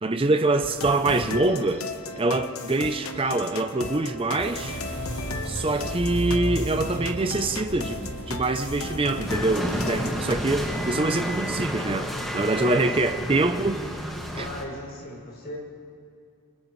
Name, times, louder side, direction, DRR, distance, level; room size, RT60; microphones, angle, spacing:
voice 1, 0.0-1.9 2.2-4.8 5.5-13.8 14.4-14.5, right 2 dB, 25° right, 0.6 m, -25 dB
The Cold but its drippy, 0.6-10.3, left 3 dB, 75° left, 1.1 m, -36 dB
sound 1, 4.4-10.6, equal, 55° right, 5.7 m, -34 dB
sound 2, 9.3-14.6, equal, ahead, 1.9 m, -31 dB
voice 2, 14.3-15.6, equal, 45° left, 6.5 m, -37 dB
29.0 x 28.0 x 3.2 m
head